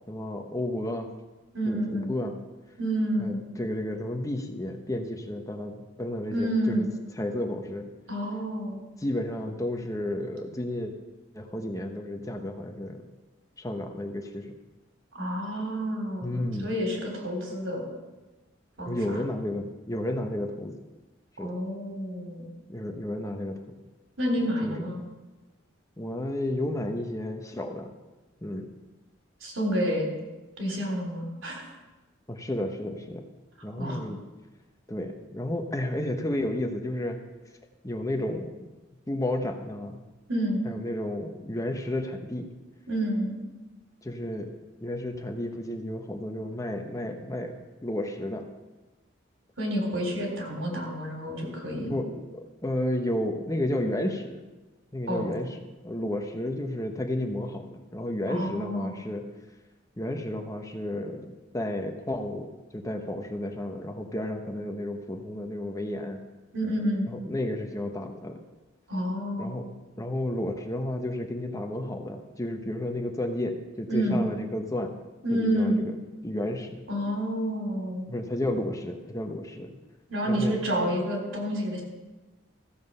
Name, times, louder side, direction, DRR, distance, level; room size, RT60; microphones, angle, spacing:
voice 1, 0.1-1.1 1.7-2.4 3.2-6.9 7.2-7.9 9.0-10.9 11.3-13.1 13.6-14.5 16.2-16.7 18.9-20.8 21.4-21.5 22.7-23.6 24.6-24.8 26.0-27.9 28.4-28.7 32.3-33.2 33.6-34.2 34.9-37.2 37.8-38.7 39.1-40.0 40.6-42.5 44.0-44.5 44.8-48.5 51.7-54.4 54.9-55.6 55.8-59.3 60.0-62.5 62.7-66.2 67.1-68.4 69.4-74.9 75.3-76.0 76.2-76.8 78.1-79.7 80.2-80.6, left 1 dB, 15° left, 4 dB, 0.9 m, -32 dB
voice 2, 1.5-2.1 2.8-3.4 6.3-6.9 8.1-8.8 15.1-17.8 18.8-19.0 21.4-22.5 24.2-25.0 29.4-30.1 30.6-31.6 33.8-34.0 40.3-40.6 42.9-43.4 49.6-51.9 55.1-55.3 58.3-58.9 66.5-67.1 68.9-69.5 73.9-74.2 75.2-75.8 76.9-78.1 80.1-81.8, equal, 80° right, 0 dB, 3.5 m, -29 dB
14.5 x 7.6 x 5.5 m, 1.2 s
head